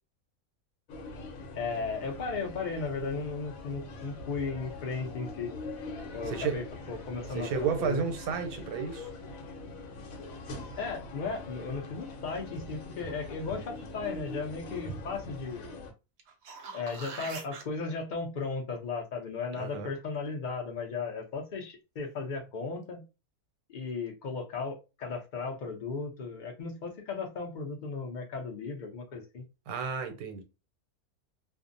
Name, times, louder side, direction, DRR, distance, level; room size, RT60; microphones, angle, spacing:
sound 1, 0.9-15.9, left 2 dB, 70° left, 1.1 m, -43 dB
voice 1, 1.6-5.5 6.1-6.6 6.9-8.0 10.8-15.7 16.7-23.0 23.7-29.4, left 4 dB, 50° left, 0.5 m, -36 dB
voice 2, 6.3-6.6 7.3-9.1 19.6-19.9 29.7-30.4, right 6 dB, 85° right, 1.1 m, -32 dB
sound 2, 16.2-17.6 22.4-22.5, right 5 dB, 60° right, 0.8 m, -43 dB
2.5 x 2.0 x 2.5 m
omnidirectional pair, 1.5 m